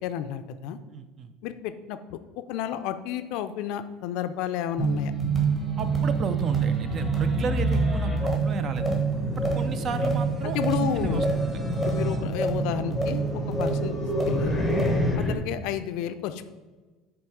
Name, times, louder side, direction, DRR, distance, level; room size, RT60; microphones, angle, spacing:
voice 1, 0.0-0.8 1.4-2.0 2.5-5.1 10.4-11.2 11.8-13.9 14.3-14.7 15.2-16.4, left 10 dB, 65° left, 11 dB, 0.4 m, -31 dB
voice 2, 0.9-1.3 5.8-9.0 9.4-11.5 15.1-15.3, right 5 dB, 35° right, 10 dB, 0.4 m, -33 dB
sound 1, 4.8-15.1, right 4 dB, 10° right, 1.2 m, -27 dB
sound 2, 5.5-15.4, left 2 dB, 10° left, 0.7 m, -32 dB
7.7 x 3.2 x 4.6 m, 1.3 s
cardioid pair, 155°, 0 cm